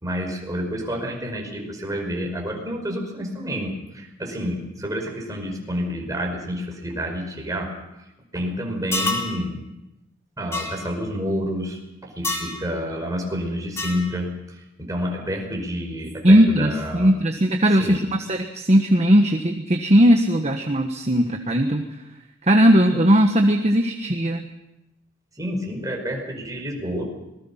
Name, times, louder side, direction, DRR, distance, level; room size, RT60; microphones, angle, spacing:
voice 1, 0.0-7.7 8.3-9.6 10.4-17.2 17.8-18.0 25.4-27.1, equal, 20° right, 1 dB, 5.2 m, -29 dB
sound 1, 8.9-9.3 10.5-10.7 12.2-12.5 13.8-14.0, left 2 dB, 15° left, 4.1 m, -26 dB
voice 2, 16.2-18.0 18.3-21.8 22.4-24.4, equal, 35° right, 4 dB, 1.3 m, -18 dB
26.0 x 20.5 x 5.8 m, 0.90 s
head